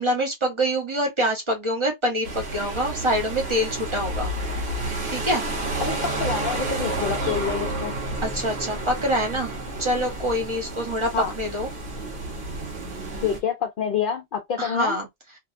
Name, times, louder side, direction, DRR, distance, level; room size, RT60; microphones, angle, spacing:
voice 1, 0.0-4.3 5.1-5.4 8.2-9.5 9.8-11.1 11.4-11.7 14.6-15.1, equal, 30° right, 0.7 m, -25 dB
sound 1, 2.2-13.4, right 2 dB, 55° right, 1.2 m, -30 dB
voice 2, 5.8-8.0 11.1-11.3 13.2-15.0, left 7 dB, 55° left, 0.6 m, -27 dB
2.7 x 2.3 x 2.4 m
omnidirectional pair, 1.3 m